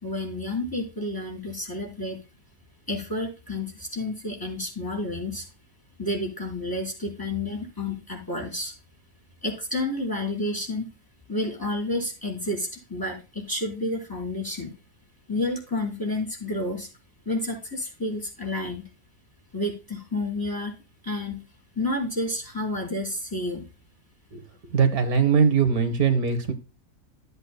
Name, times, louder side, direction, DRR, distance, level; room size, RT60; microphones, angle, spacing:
voice 1, 0.0-2.2 2.9-5.4 6.0-8.7 9.4-10.9 11.3-14.8 15.3-16.9 17.3-18.9 19.5-20.7 21.0-21.4 21.8-23.7, left 1 dB, 15° left, -2 dB, 4.2 m, -30 dB
voice 2, 24.7-26.5, right 6 dB, 75° right, 9 dB, 1.6 m, -21 dB
14.0 x 8.1 x 2.2 m, 0.30 s
omnidirectional pair, 1.6 m